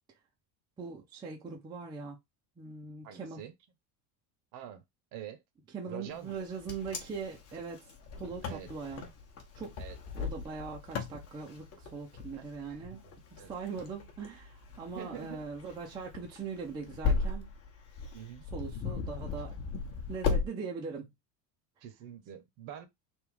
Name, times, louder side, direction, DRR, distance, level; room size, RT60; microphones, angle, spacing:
voice 1, 0.8-2.2 2.6-3.4 5.7-7.8 8.2-9.0 9.6-9.8 10.1-13.0 13.5-17.5 18.5-19.5 20.1-21.1, right 5 dB, 10° right, 0.4 m, -41 dB
voice 2, 3.0-3.5 4.5-4.8 5.1-5.4 5.9-6.4 8.4-8.7 9.8-10.0 12.7-12.9 13.4-13.5 14.9-15.4 18.1-18.4 21.8-22.9, right 10 dB, 45° right, 0.8 m, -45 dB
Wind, 6.3-20.5, left 5 dB, 30° left, 1.0 m, -37 dB
3.5 x 2.9 x 4.7 m
cardioid pair, 180°, 46 cm